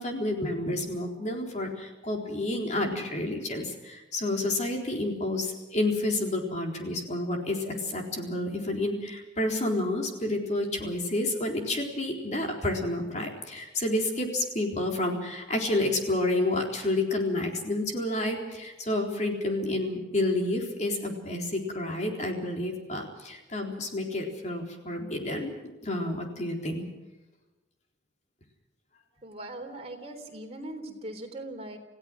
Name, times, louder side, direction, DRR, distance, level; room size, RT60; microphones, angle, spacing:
voice 1, 0.0-26.9, left 1 dB, 40° left, 1 dB, 3.9 m, -30 dB
voice 2, 29.2-31.8, right 1 dB, 35° right, 3 dB, 3.5 m, -40 dB
28.5 x 16.5 x 6.2 m, 1.1 s
head